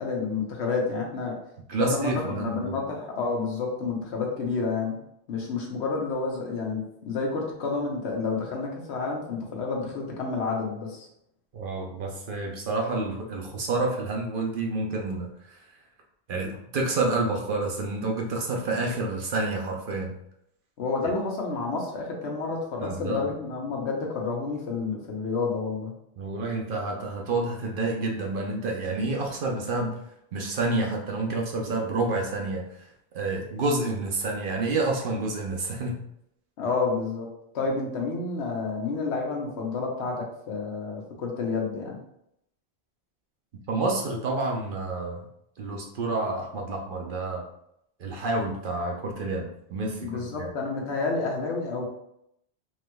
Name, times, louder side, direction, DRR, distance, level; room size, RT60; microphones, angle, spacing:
voice 1, 0.0-1.4 1.8-5.0 5.3-11.1 20.8-25.9 36.6-37.3 37.5-42.0 50.0-51.8, left 4 dB, 80° left, 0 dB, 1.1 m, -29 dB
voice 2, 1.7-2.8 11.5-15.6 16.3-20.2 22.8-23.2 26.2-30.0 30.3-32.9 33.1-36.0 43.7-45.2 45.6-47.5 48.0-50.5, right 2 dB, 60° right, 0 dB, 0.7 m, -29 dB
3.4 x 3.0 x 2.2 m, 0.76 s
omnidirectional pair, 1.1 m